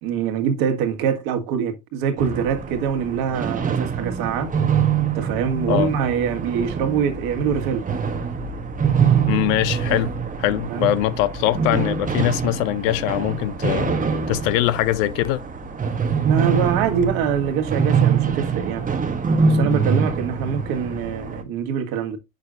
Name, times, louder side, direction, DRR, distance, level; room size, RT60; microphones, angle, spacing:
voice 1, 0.0-4.5 5.1-7.8 10.7-10.9 16.2-18.8 19.5-22.2, right 7 dB, 55° right, 1.7 m, -24 dB
sound 1, 2.2-21.4, right 6 dB, 20° right, 1.1 m, -24 dB
voice 2, 9.3-10.1 10.4-14.0 14.3-15.4, left 15 dB, 60° left, 0.7 m, -22 dB
8.3 x 6.5 x 2.5 m
hypercardioid pair, 85°, 43 cm